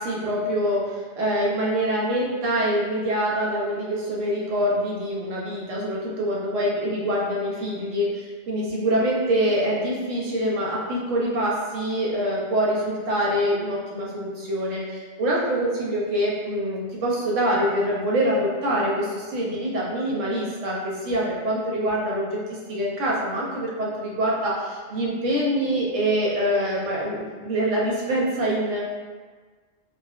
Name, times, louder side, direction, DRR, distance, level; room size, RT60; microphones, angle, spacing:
voice 1, 0.0-28.8, equal, 90° right, -4 dB, 1.0 m, -25 dB
3.7 x 2.1 x 2.3 m, 1.4 s
omnidirectional pair, 1.2 m